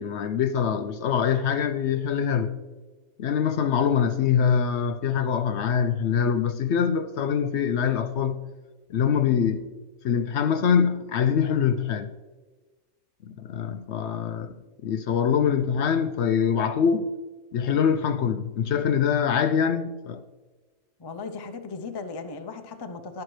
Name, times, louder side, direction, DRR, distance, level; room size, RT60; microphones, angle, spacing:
voice 1, 0.0-2.5 3.2-8.4 8.9-9.6 10.0-12.1 13.4-14.5 14.8-17.1 17.5-20.2, left 7 dB, 65° left, 0.7 m, -24 dB
voice 2, 21.0-23.2, left 4 dB, 35° left, 0.4 m, -37 dB
11.5 x 10.5 x 3.2 m
omnidirectional pair, 1.4 m